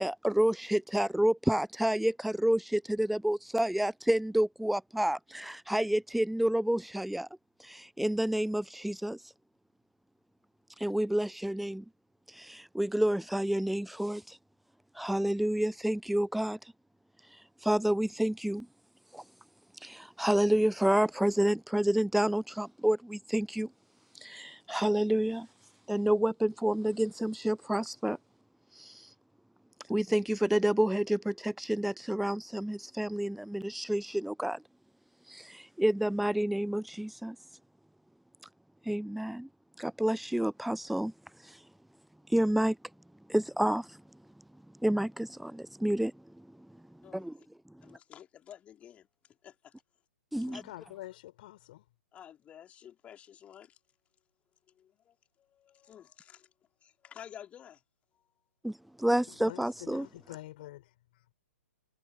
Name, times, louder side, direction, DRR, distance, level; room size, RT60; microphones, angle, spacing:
voice 1, 0.0-5.2 5.7-7.3 8.0-9.2 10.8-11.8 12.8-14.2 15.0-16.6 17.7-18.6 20.2-23.7 24.7-25.4 25.9-28.2 29.9-34.6 35.8-37.3 38.9-39.4 40.0-41.1 42.3-42.7 43.3-43.8 44.8-45.1 45.8-46.1 50.3-50.6 59.0-60.1, right 1 dB, ahead, 0.4 m, -28 dB
voice 2, 47.0-47.5 47.8-49.8 50.5-50.6 52.1-53.8 54.7-56.5 56.8-57.8 58.1-58.2, left 10 dB, 15° left, 3.9 m, -52 dB
voice 3, 50.4-51.8 59.3-60.8, left 16 dB, 40° left, 4.5 m, -46 dB
figure-of-eight pair, 120°, 8 cm